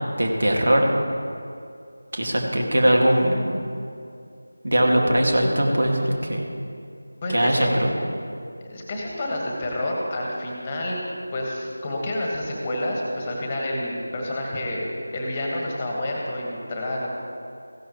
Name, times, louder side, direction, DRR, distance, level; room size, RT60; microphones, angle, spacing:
voice 1, 0.2-0.9 2.1-3.5 4.6-6.4 7.3-7.9, right 1 dB, 60° right, 0 dB, 2.2 m, -20 dB
voice 2, 7.2-7.7 8.6-11.0 11.3-17.1, left 1 dB, 20° left, -2 dB, 1.7 m, -29 dB
15.5 x 11.0 x 3.2 m, 2.4 s
figure-of-eight pair, 165°, 0 cm